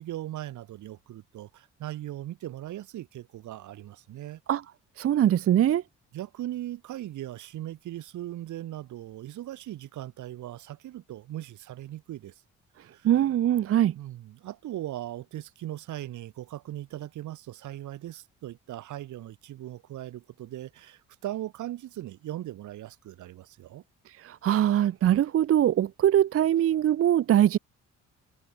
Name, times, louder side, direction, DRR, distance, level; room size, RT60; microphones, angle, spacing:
voice 1, 0.0-4.4 6.1-12.4 12.8-13.1 13.9-23.8, right 14 dB, 75° right, 1.5 m, -39 dB
voice 2, 5.0-5.8 13.0-13.9 24.1-27.6, right 11 dB, 50° right, 0.6 m, -22 dB
cardioid pair, 90°, 30 cm